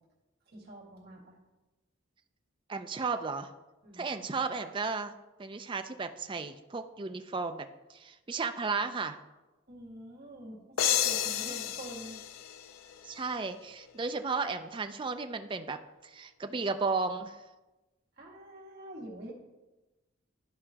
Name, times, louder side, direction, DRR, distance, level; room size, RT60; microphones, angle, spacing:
voice 1, 0.5-1.4 3.8-4.0 9.7-12.2 18.2-19.3, right 1 dB, 50° right, -3 dB, 1.9 m, -46 dB
voice 2, 2.7-3.5 4.0-5.1 5.4-9.2 11.5-11.6 13.0-17.4, right 4 dB, 25° right, 8 dB, 0.4 m, -34 dB
sound 1, 10.8-13.4, left 10 dB, 80° left, 0.4 m, -31 dB
13.0 x 4.9 x 2.9 m, 1.1 s
head